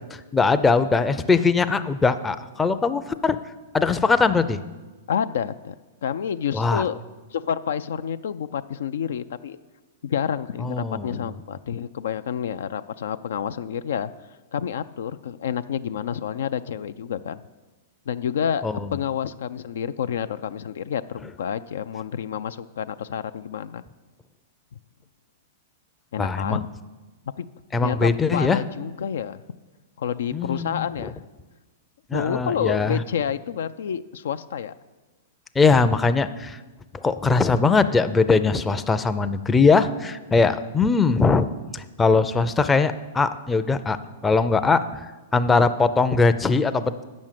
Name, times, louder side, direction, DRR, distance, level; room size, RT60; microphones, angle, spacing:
voice 1, 0.1-3.4 3.7-4.6 6.5-6.8 10.6-11.2 18.6-18.9 26.2-26.6 27.7-28.6 30.3-31.1 32.1-33.0 35.6-36.6 37.0-41.5 41.7-44.0 44.2-45.0 45.3-47.0, left 4 dB, 15° left, 10 dB, 0.5 m, -21 dB
voice 2, 5.1-5.8 6.0-7.0 7.3-9.6 10.0-14.1 14.5-17.4 18.1-18.6 18.9-23.8 26.1-26.6 27.4-27.5 27.8-29.4 30.0-31.2 32.1-34.7, left 8 dB, 75° left, 12 dB, 0.3 m, -29 dB
8.5 x 6.3 x 7.5 m, 1.3 s
hypercardioid pair, 125°, 0 cm